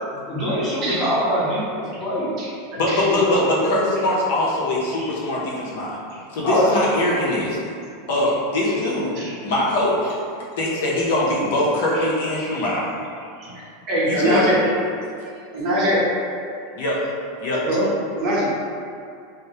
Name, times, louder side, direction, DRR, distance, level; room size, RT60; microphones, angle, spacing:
voice 1, 0.3-2.3 3.1-3.5 6.4-7.1 14.3-14.6, equal, 25° left, -9 dB, 1.0 m, -23 dB
voice 2, 0.8-1.2 1.9-2.0 2.4-2.5 2.9-3.1 4.9-5.1 6.1-6.2 8.6-8.7 9.1-9.3 11.9-12.0 13.4-13.5 13.9-14.6 15.5-16.0 17.7-17.8 18.2-18.5, equal, 50° right, -7 dB, 0.8 m, -23 dB
voice 3, 2.8-6.0 6.3-7.6 8.1-9.2 9.4-10.2 10.6-12.9 14.1-14.5 16.8-17.0 17.4-17.6, left 1 dB, 70° left, -5 dB, 0.5 m, -22 dB
2.2 x 2.0 x 2.8 m, 2.4 s
supercardioid pair, 120°, 0 cm